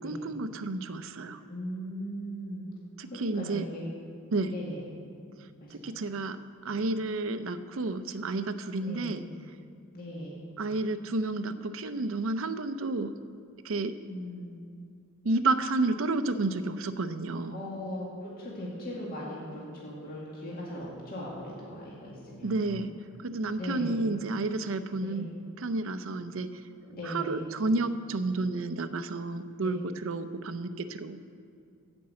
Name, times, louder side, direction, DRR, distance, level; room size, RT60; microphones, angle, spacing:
voice 1, 0.0-1.4 3.0-3.7 4.3-4.5 5.7-6.4 6.6-9.2 10.6-13.2 13.6-13.9 15.2-17.6 22.4-23.0 23.2-25.3 25.6-26.6 27.0-31.2, right 2 dB, 60° right, 11 dB, 0.6 m, -31 dB
voice 2, 1.1-2.7 3.1-3.8 4.5-4.9 5.6-5.9 6.6-6.8 8.8-9.2 9.9-10.4 14.1-14.6 17.5-22.9 23.6-24.0 25.0-25.3 26.9-27.4, equal, 40° left, -5 dB, 2.0 m, -39 dB
15.0 x 5.3 x 7.6 m, 2.3 s
head